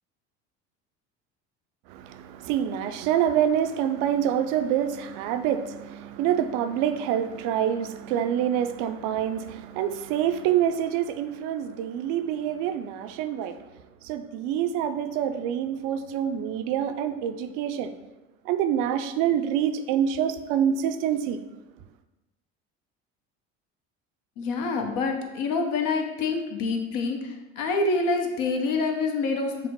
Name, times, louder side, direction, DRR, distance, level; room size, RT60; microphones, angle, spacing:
voice 1, 1.9-13.6 14.0-17.9 18.5-21.4, right 9 dB, 65° right, 9 dB, 0.5 m, -26 dB
voice 2, 24.4-29.7, left 3 dB, 65° left, 3 dB, 0.9 m, -26 dB
5.8 x 2.0 x 4.5 m, 1.0 s
hypercardioid pair, 70°, 36 cm